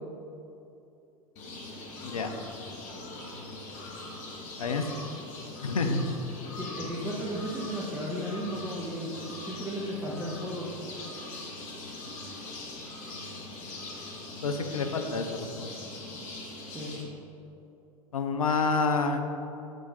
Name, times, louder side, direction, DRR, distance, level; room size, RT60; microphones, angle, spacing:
sound 1, 1.4-17.0, left 2 dB, 45° left, 1.5 m, -41 dB
voice 1, 4.6-5.1 5.6-6.0 14.4-15.7 18.1-19.2, left 4 dB, 75° left, 6 dB, 0.6 m, -28 dB
voice 2, 6.4-9.1 9.4-10.7 16.7-17.0, equal, 10° right, -6 dB, 1.1 m, -35 dB
7.6 x 6.4 x 4.1 m, 2.9 s
figure-of-eight pair, 85°, 18 cm